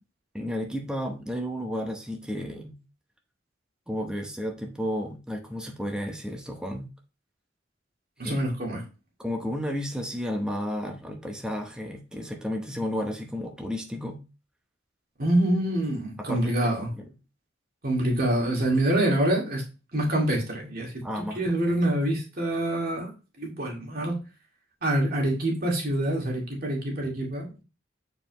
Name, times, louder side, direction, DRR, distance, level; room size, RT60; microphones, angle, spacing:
voice 1, 0.3-2.8 3.9-6.9 8.2-8.4 9.2-14.2 16.2-17.1 21.0-21.8, equal, 5° right, 2 dB, 0.8 m, -32 dB
voice 2, 8.2-8.8 15.2-16.9 17.8-19.6 19.9-23.1 23.4-24.2 24.8-27.5, right 1 dB, 55° right, -1 dB, 2.1 m, -26 dB
7.3 x 4.5 x 3.0 m, 0.31 s
head